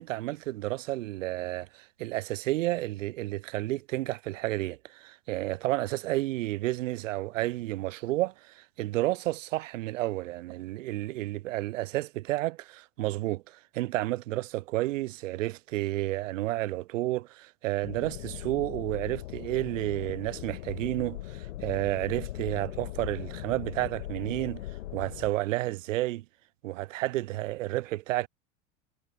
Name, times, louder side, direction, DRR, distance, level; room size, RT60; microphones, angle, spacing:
voice 1, 0.0-24.6 24.9-26.2 26.6-28.3, right 17 dB, 75° right, 0.5 m, -31 dB
sound 1, 17.8-25.3, left 14 dB, 70° left, 1.7 m, -39 dB
hypercardioid pair, 85°, 39 cm